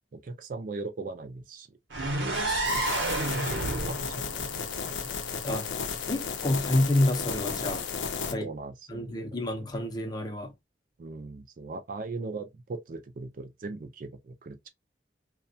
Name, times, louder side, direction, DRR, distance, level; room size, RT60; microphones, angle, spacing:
voice 1, 0.1-1.8 2.7-2.8 3.4-4.7 8.3-9.3 11.0-14.7, right 3 dB, 45° right, 0.4 m, -39 dB
sound 1, 1.9-5.8, right 2 dB, 75° right, 0.8 m, -31 dB
voice 2, 2.3-2.8 5.4-5.6 6.1-7.8 8.3-8.5 8.9-10.5, left 1 dB, 20° left, 0.5 m, -29 dB
sound 2, 2.6-8.3, left 6 dB, 80° left, 0.5 m, -34 dB
2.2 x 2.1 x 2.6 m
head